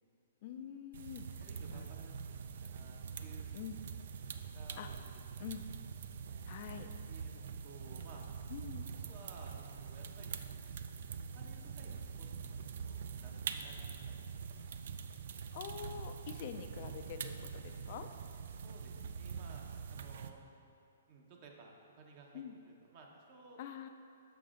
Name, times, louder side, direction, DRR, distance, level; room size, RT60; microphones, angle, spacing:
voice 1, 0.4-1.3 1.7-1.9 3.5-3.8 4.8-4.9 5.4-5.7 6.4-6.9 8.5-8.9 15.5-18.1 22.3-22.5 23.6-23.9, left 9 dB, 50° left, 7 dB, 0.3 m, -45 dB
sound 1, 0.9-20.3, right 6 dB, 60° right, 0.3 m, -44 dB
voice 2, 1.4-3.5 3.8-3.9 4.5-5.1 5.4-5.5 6.3-8.2 9.0-10.7 11.3-12.5 12.8-13.7 14.2-14.8 18.6-20.4 21.1-23.6, right 3 dB, 40° right, 0 dB, 0.9 m, -57 dB
7.0 x 6.0 x 2.5 m, 2.6 s
hypercardioid pair, 130°, 0 cm